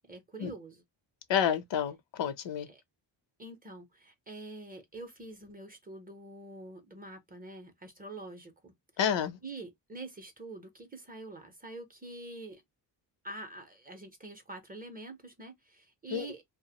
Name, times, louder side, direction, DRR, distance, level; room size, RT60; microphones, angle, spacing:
voice 1, 0.1-0.8 2.7-2.8 3.4-8.7 9.4-12.6 13.2-16.4, right 2 dB, 20° right, 0.5 m, -46 dB
voice 2, 1.3-2.7 9.0-9.4 16.1-16.3, left 8 dB, 75° left, 0.7 m, -29 dB
2.4 x 2.0 x 2.7 m
wide cardioid pair, 120°, 45 cm